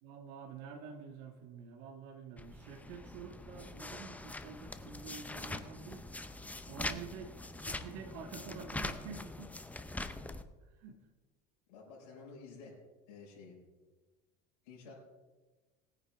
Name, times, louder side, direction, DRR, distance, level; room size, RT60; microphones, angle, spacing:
voice 1, 0.0-6.1 6.4-9.5 10.6-11.0 14.9-15.0, right 6 dB, 75° right, 2 dB, 1.6 m, -48 dB
sound 1, 2.4-10.4, left 2 dB, 5° left, 0.7 m, -43 dB
voice 2, 6.7-7.1 11.7-12.8 13.1-13.6 14.6-14.9, left 5 dB, 85° left, -4 dB, 4.8 m, -52 dB
19.5 x 9.5 x 3.5 m, 1.3 s
supercardioid pair, 125°, 21 cm